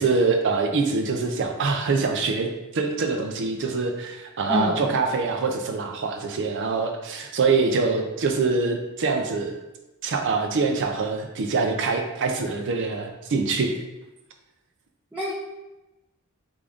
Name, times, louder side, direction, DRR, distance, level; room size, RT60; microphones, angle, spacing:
voice 1, 0.0-9.5 10.0-13.8, right 4 dB, 55° right, 3 dB, 0.5 m, -24 dB
voice 2, 4.5-5.0 15.1-15.3, left 1 dB, 10° right, -7 dB, 0.7 m, -26 dB
3.7 x 3.5 x 3.5 m, 1.0 s
head